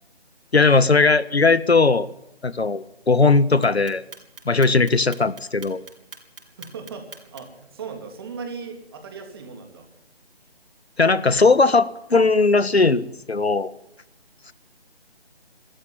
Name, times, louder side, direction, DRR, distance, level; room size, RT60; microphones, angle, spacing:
voice 1, 0.5-2.1 2.4-4.0 4.4-5.8 11.0-13.7, left 3 dB, 90° left, 15 dB, 1.6 m, -18 dB
Clock, 3.6-7.6, right 4 dB, 60° right, 5.3 m, -42 dB
voice 2, 6.6-9.9, right 5 dB, 25° right, 4 dB, 3.3 m, -37 dB
25.0 x 14.0 x 9.4 m, 0.84 s
figure-of-eight pair, 165°, 31 cm